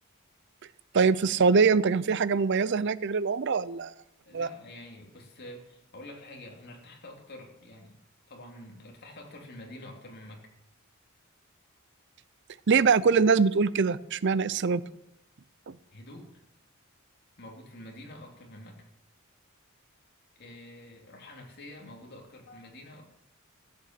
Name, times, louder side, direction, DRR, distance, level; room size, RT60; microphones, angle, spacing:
voice 1, 0.9-3.9 4.3-4.5 12.7-14.8 15.7-15.8, right 5 dB, 55° right, 18 dB, 0.5 m, -23 dB
voice 2, 4.2-8.0 8.3-10.5 15.9-16.4 17.4-18.8 20.3-23.1, left 1 dB, 50° left, 1 dB, 3.1 m, -47 dB
15.0 x 8.8 x 7.5 m, 0.84 s
head